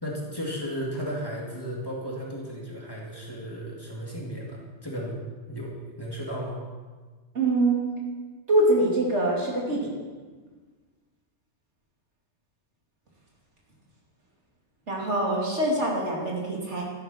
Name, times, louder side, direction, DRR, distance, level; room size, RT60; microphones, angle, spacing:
voice 1, 0.0-5.2 5.5-6.6, equal, 20° left, -4 dB, 2.2 m, -34 dB
voice 2, 7.3-7.8 8.5-9.9 14.9-16.8, right 2 dB, 65° right, -3 dB, 2.8 m, -24 dB
12.5 x 11.0 x 4.3 m, 1.4 s
omnidirectional pair, 1.3 m